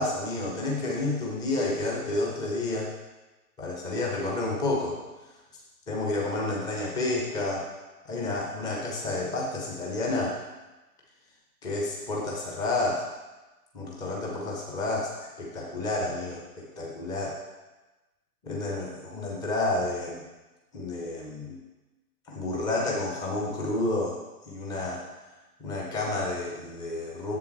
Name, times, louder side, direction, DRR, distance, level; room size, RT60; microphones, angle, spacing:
voice 1, 0.0-2.9 3.6-5.0 5.9-7.7 8.0-10.4 11.6-13.0 13.7-17.3 18.4-20.2 20.7-21.6 22.3-24.2 24.5-25.0 25.6-27.4, left 2 dB, 10° left, -2 dB, 1.0 m, -30 dB
7.4 x 7.2 x 4.6 m, 1.1 s
figure-of-eight pair, 125°, 46 cm